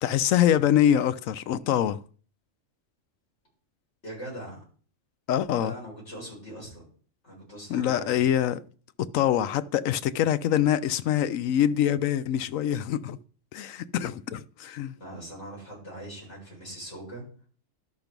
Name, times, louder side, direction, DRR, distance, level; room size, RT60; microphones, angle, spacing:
voice 1, 0.0-2.0 5.3-5.7 7.7-8.6 9.0-13.2 13.5-14.9, left 10 dB, 80° left, 1.0 m, -24 dB
voice 2, 4.0-4.6 5.6-6.8 7.2-8.2 14.9-17.2, right 1 dB, 60° left, 7.4 m, -41 dB
12.5 x 5.9 x 5.2 m
omnidirectional pair, 1.4 m